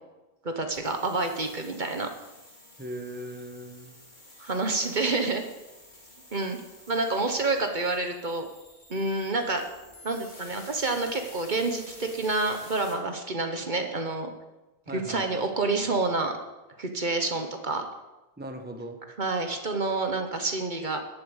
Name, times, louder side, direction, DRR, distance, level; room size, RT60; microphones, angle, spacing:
voice 1, 0.4-2.1 4.4-5.4 6.3-6.6 6.9-8.5 8.9-9.6 10.0-14.3 14.9-16.3 16.8-17.8 19.2-21.0, right 3 dB, 50° right, 5 dB, 1.3 m, -28 dB
sound 1, 0.7-12.9, left 1 dB, 50° left, 3.1 m, -51 dB
voice 2, 2.8-4.0 14.9-15.4 15.8-16.0 18.4-19.0, right 1 dB, 10° right, 5 dB, 1.1 m, -39 dB
11.0 x 8.6 x 8.1 m, 1.1 s
omnidirectional pair, 1.0 m